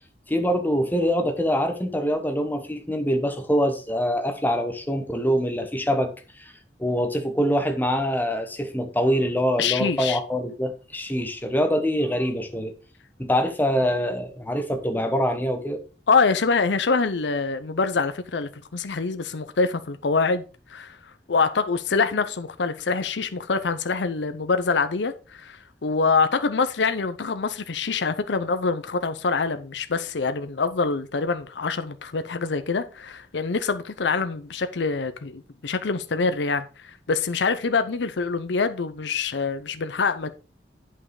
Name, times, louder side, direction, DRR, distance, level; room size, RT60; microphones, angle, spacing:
voice 1, 0.3-6.5 6.8-12.7 13.2-15.8, equal, 10° left, 1.2 m, -24 dB
voice 2, 9.6-10.2 16.1-20.4 20.7-21.0 21.3-40.3, left 4 dB, 75° left, 0.7 m, -25 dB
8.7 x 5.5 x 4.8 m
head